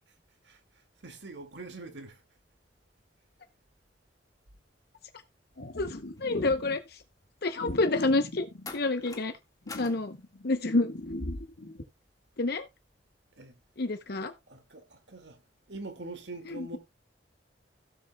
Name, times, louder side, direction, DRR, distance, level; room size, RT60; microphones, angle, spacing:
voice 1, 0.4-2.2 13.4-13.6 14.5-15.4 15.7-16.8, right 2 dB, 70° right, 2.2 m, -44 dB
sound 1, 5.6-6.8 7.6-9.2 9.7-11.8, left 1 dB, 75° left, 1.7 m, -39 dB
voice 2, 5.8-7.0 7.4-9.3 9.8-10.1 10.4-10.9 12.4-12.7 13.8-14.3, left 2 dB, 60° left, 0.8 m, -28 dB
sound 2, 6.2-6.5 8.6-9.3 9.7-10.0 11.0-11.2, left 3 dB, 20° left, 1.9 m, -45 dB
16.5 x 7.3 x 2.3 m
head